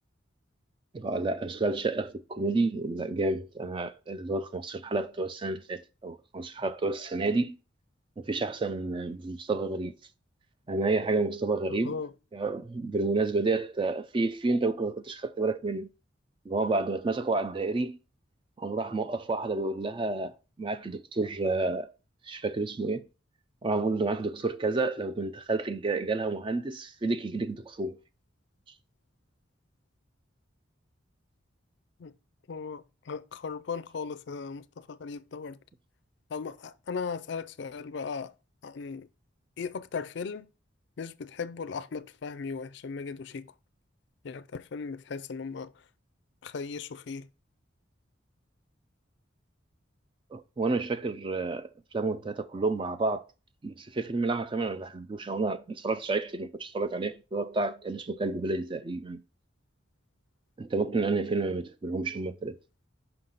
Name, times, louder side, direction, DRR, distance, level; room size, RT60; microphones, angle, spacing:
voice 1, 0.9-7.6 8.2-9.9 10.7-12.0 12.3-15.9 16.5-18.0 18.6-21.9 22.2-23.1 23.6-28.0 50.3-53.2 53.6-59.2 60.6-62.6, right 3 dB, 25° right, 0.3 m, -30 dB
voice 2, 32.5-35.6 36.3-38.3 38.6-39.1 39.6-40.5 41.0-43.5 44.2-45.7 46.4-47.3, left 5 dB, 60° left, 0.4 m, -37 dB
5.7 x 5.6 x 3.9 m
head